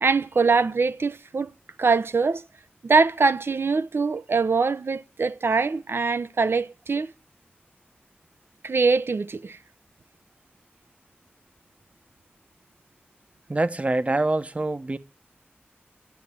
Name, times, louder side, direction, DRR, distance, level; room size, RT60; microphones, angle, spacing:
voice 1, 0.0-1.5 1.8-2.4 2.8-7.1 8.6-9.6, right 4 dB, 75° right, 0.8 m, -23 dB
voice 2, 13.5-15.0, right 2 dB, 35° right, 1.0 m, -25 dB
13.0 x 9.2 x 9.8 m
wide cardioid pair, 90°, 4 cm